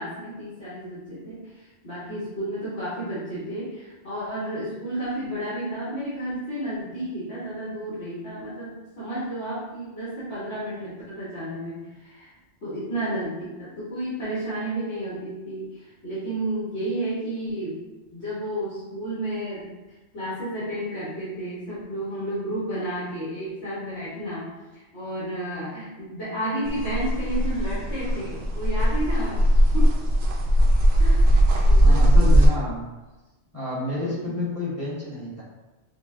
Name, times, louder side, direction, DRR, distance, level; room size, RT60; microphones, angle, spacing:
voice 1, 0.0-12.3 12.6-17.8 18.1-24.5 24.7-29.4 29.7-30.0 31.0-31.2 31.7-32.3 34.0-34.4, right 1 dB, 70° left, -11 dB, 1.3 m, -32 dB
sound 1, 26.7-32.5, equal, 65° right, 0.8 m, -19 dB
voice 2, 31.8-32.9 33.5-35.4, left 2 dB, 15° left, -9 dB, 1.2 m, -29 dB
5.0 x 2.1 x 2.5 m, 1.1 s
omnidirectional pair, 1.2 m